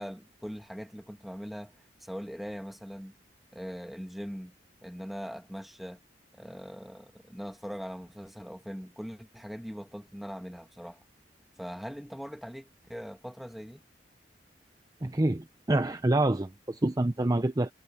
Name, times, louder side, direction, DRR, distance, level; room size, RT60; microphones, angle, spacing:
voice 1, 0.0-3.1 3.5-4.5 4.8-6.0 6.4-11.0 11.6-13.8, equal, ahead, 1.7 m, -41 dB
voice 2, 15.0-17.7, right 2 dB, 20° right, 0.6 m, -27 dB
head